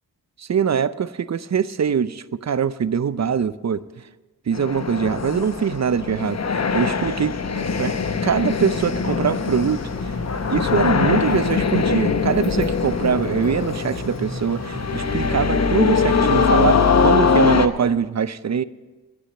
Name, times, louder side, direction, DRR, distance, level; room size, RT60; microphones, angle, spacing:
voice 1, 0.4-3.8 4.5-7.9 8.2-9.8 10.5-18.6, right 7 dB, 45° right, 16 dB, 0.6 m, -23 dB
sound 1, 4.5-17.7, left 5 dB, 45° left, 0.9 m, -22 dB
sound 2, 7.6-17.4, left 2 dB, 65° left, 2.0 m, -35 dB
18.0 x 6.3 x 8.5 m, 1.3 s
cardioid pair, 55°, 36 cm